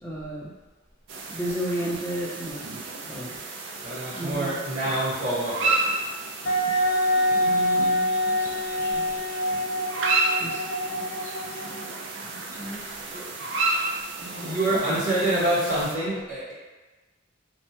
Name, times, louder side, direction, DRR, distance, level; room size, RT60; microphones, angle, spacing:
voice 1, 0.0-0.5 1.3-2.7 3.1-3.4 4.1-4.6 7.3-8.5 8.8-9.1 10.4-12.8 14.9-15.0, right 1 dB, 10° left, -5 dB, 0.5 m, -35 dB
sound 1, 1.1-16.0, right 3 dB, 65° right, 0.4 m, -32 dB
voice 2, 3.8-5.7 13.1-13.2 14.2-16.5, right 1 dB, 40° right, -11 dB, 1.3 m, -26 dB
Wind instrument woodwind instrument, 6.5-12.0, equal, 85° left, 0.5 m, -25 dB
3.2 x 2.1 x 2.7 m, 1.2 s
head